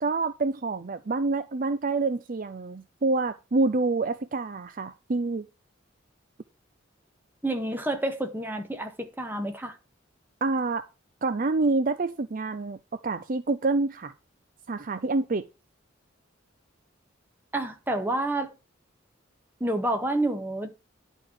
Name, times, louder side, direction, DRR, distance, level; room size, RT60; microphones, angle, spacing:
voice 1, 0.0-5.4 10.4-10.8 11.2-12.8 13.0-14.1 14.7-15.4, right 3 dB, 45° right, 0.5 m, -27 dB
voice 2, 7.4-9.7 17.5-18.5 19.6-20.7, right 1 dB, 10° right, 1.6 m, -29 dB
11.0 x 4.6 x 7.3 m
head